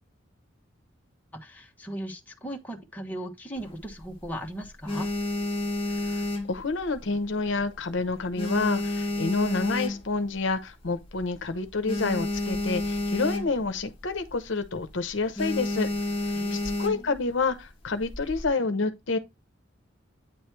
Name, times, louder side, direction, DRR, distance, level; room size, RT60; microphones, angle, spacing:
voice 1, 1.3-5.1 16.3-17.2, equal, 10° left, 1.1 m, -38 dB
sound 1, 3.6-4.3 4.7-7.2 7.5-7.8 8.1-10.4 10.8-10.9 11.1-11.2 11.6-13.8 14.1-14.3 14.6-14.9 15.4-17.2 17.9-18.5, left 2 dB, 30° left, 1.1 m, -30 dB
voice 2, 6.0-19.2, left 3 dB, 65° left, 0.8 m, -29 dB
9.1 x 3.1 x 4.5 m
head